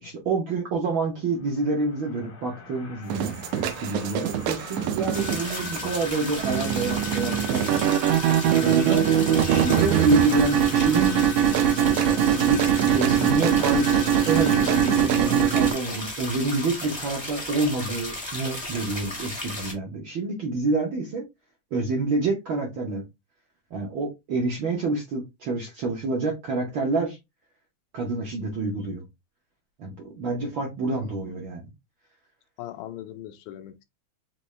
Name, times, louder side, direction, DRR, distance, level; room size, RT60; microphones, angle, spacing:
voice 1, 0.0-7.6 8.3-9.1 9.4-11.2 12.1-13.9 14.2-21.2 21.7-23.0 23.7-27.2 27.9-29.0 29.8-31.6, right 3 dB, 65° right, 1.2 m, -27 dB
sound 1, 1.3-15.0, left 7 dB, 60° left, 1.1 m, -41 dB
sound 2, 3.1-15.7, right 9 dB, 85° right, 2.1 m, -22 dB
sound 3, 5.1-19.7, left 1 dB, 35° left, 0.4 m, -35 dB
voice 2, 31.0-31.4 32.6-33.8, left 12 dB, 80° left, 1.8 m, -40 dB
5.1 x 2.7 x 3.1 m
omnidirectional pair, 3.4 m